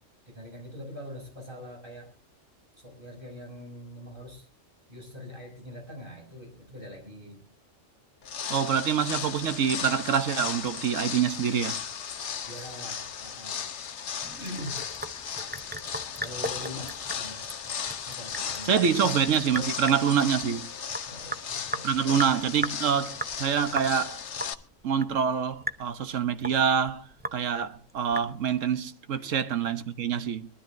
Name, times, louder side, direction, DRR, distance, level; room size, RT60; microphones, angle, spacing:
voice 1, 0.3-2.1 2.8-4.5 4.9-7.4 12.4-13.7 14.4-14.8 16.2-17.4 18.1-19.1 19.5-20.0 21.0-22.2 29.1-29.4, left 1 dB, 40° right, 6.5 m, -43 dB
sound 1, 8.2-24.5, left 7 dB, 60° left, 1.2 m, -36 dB
voice 2, 8.5-11.8 18.6-20.7 21.8-24.2 24.8-30.5, right 7 dB, 70° right, 1.4 m, -26 dB
Sink (filling or washing) / Drip, 14.2-28.7, right 1 dB, 10° right, 0.5 m, -38 dB
22.5 x 12.5 x 2.7 m
omnidirectional pair, 1.4 m